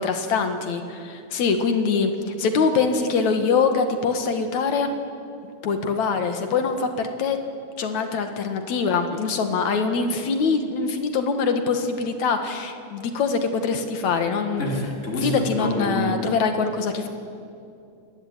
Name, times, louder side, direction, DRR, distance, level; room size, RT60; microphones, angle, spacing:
voice 1, 0.0-2.1 2.4-4.9 5.4-7.4 7.8-14.9 15.2-17.1, left 5 dB, 75° left, 6 dB, 3.0 m, -23 dB
voice 2, 14.6-16.3, left 1 dB, 25° left, 0 dB, 3.9 m, -27 dB
27.5 x 21.0 x 9.1 m, 2.5 s
omnidirectional pair, 3.3 m